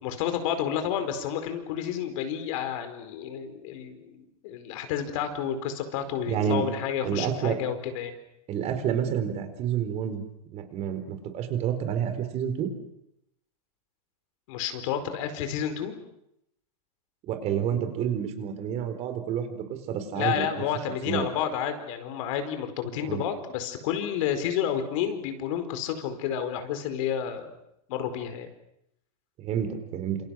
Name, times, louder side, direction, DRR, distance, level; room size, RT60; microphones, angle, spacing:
voice 1, 0.0-8.2 14.5-16.0 20.1-27.5 27.9-28.5, left 9 dB, 55° left, 8 dB, 4.7 m, -30 dB
voice 2, 6.3-6.7 7.0-7.6 8.5-10.2 10.5-12.7 17.2-20.6 21.0-21.3 23.0-23.2 29.4-30.2, right 8 dB, 35° right, 9 dB, 4.4 m, -29 dB
28.0 x 28.0 x 6.5 m, 0.79 s
supercardioid pair, 145°, 20 cm